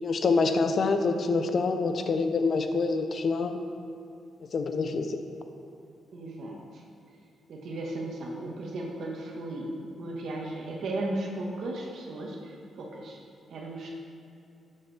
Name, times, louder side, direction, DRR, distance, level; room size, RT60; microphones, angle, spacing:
voice 1, 0.0-3.6 4.5-5.2, left 4 dB, 55° left, 7 dB, 0.8 m, -26 dB
voice 2, 6.1-6.8 7.5-13.2 13.5-13.9, right 2 dB, 70° right, -1 dB, 1.6 m, -36 dB
12.5 x 7.5 x 3.5 m, 2.5 s
cardioid pair, 70°, 0 cm